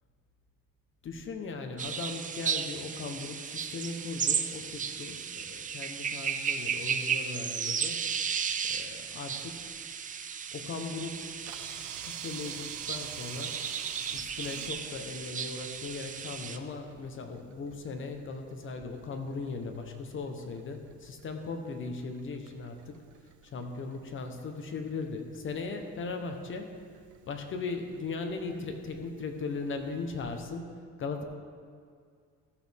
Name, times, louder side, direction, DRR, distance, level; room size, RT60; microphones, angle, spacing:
voice 1, 1.0-8.1 8.7-9.6 10.5-11.3 11.7-13.6 14.1-23.0 23.4-26.8 27.3-31.2, left 4 dB, 45° left, 5 dB, 1.0 m, -38 dB
sound 1, 1.8-16.6, right 7 dB, 25° right, 0.4 m, -34 dB
Camera, 11.0-30.4, right 10 dB, 75° right, 0.7 m, -50 dB
14.0 x 6.3 x 3.6 m, 2.1 s
cardioid pair, 120°, 30 cm